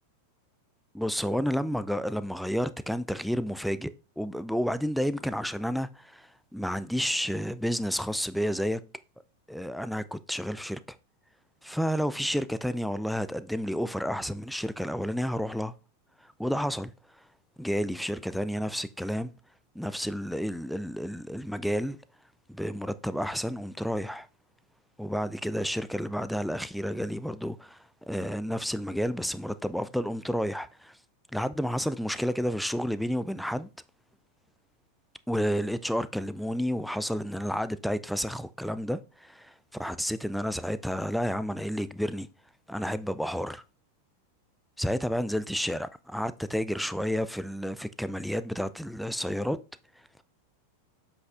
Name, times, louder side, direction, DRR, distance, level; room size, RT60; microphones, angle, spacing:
voice 1, 0.9-8.8 9.5-10.8 11.6-15.7 16.4-16.9 17.6-19.3 19.8-22.0 22.5-24.3 25.0-27.8 28.1-31.0 31.3-33.7 35.3-39.5 39.8-42.3 42.7-43.6 44.8-49.6, equal, ahead, 0.4 m, -30 dB
7.6 x 5.7 x 2.5 m
figure-of-eight pair, 90°, 0 cm